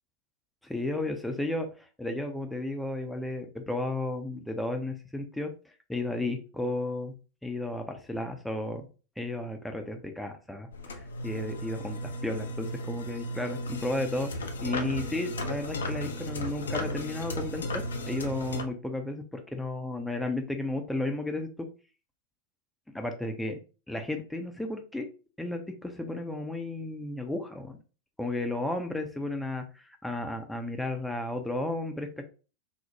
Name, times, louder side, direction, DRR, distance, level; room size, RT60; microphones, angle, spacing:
voice 1, 0.6-7.1 7.4-8.8 9.2-21.7 22.9-23.6 23.9-25.1 25.4-27.8 28.2-32.2, left 2 dB, 5° left, 4 dB, 0.5 m, -33 dB
sound 1, 10.7-18.6, left 1 dB, 70° left, 0.5 m, -35 dB
4.5 x 2.0 x 2.8 m, 0.35 s
figure-of-eight pair, 90°, 0 cm